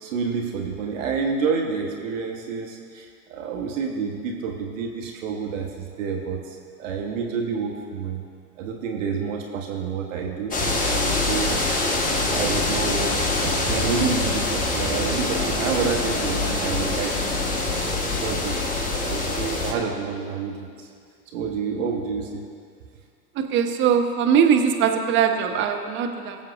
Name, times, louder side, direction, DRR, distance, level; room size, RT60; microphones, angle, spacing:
voice 1, 0.0-8.2 8.6-11.9 12.3-17.3 18.0-20.9 21.3-22.4, right 5 dB, 55° right, 1 dB, 1.3 m, -29 dB
sound 1, 10.5-19.7, left 2 dB, 15° left, 1.3 m, -24 dB
voice 2, 23.4-26.4, right 7 dB, 25° right, 4 dB, 0.9 m, -21 dB
21.5 x 7.3 x 2.5 m, 2.2 s
figure-of-eight pair, 100°, 48 cm